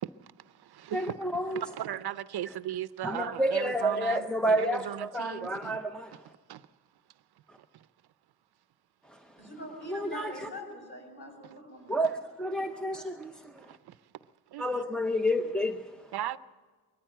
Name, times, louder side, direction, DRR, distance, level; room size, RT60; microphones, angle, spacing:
voice 1, 0.0-1.2 1.5-5.8 6.5-6.7 7.6-7.9 11.4-11.5 13.6-14.0 14.5-15.1 16.1-16.4, right 12 dB, 70° right, 0.6 m, -38 dB
voice 2, 0.9-1.6 3.0-6.3 7.5-7.6 9.0-9.4 9.9-10.5 11.9-13.8 14.6-16.1, equal, ahead, 0.7 m, -30 dB
voice 3, 9.4-12.2, left 1 dB, 30° left, 7.1 m, -43 dB
21.0 x 15.0 x 9.0 m
wide cardioid pair, 135°, 40 cm